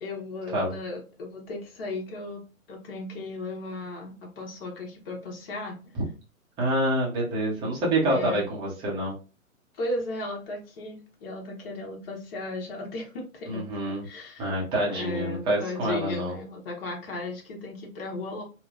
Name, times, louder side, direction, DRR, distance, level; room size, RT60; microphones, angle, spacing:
voice 1, 0.0-2.4 2.7-5.9 8.1-8.5 9.7-13.6 14.0-14.5 14.8-18.4, left 2 dB, 40° left, 0 dB, 1.0 m, -35 dB
voice 2, 6.6-9.1 13.5-14.0 14.4-16.3, right 1 dB, 10° right, -4 dB, 0.6 m, -27 dB
3.1 x 2.0 x 2.4 m, 0.33 s
figure-of-eight pair, 130°, 42 cm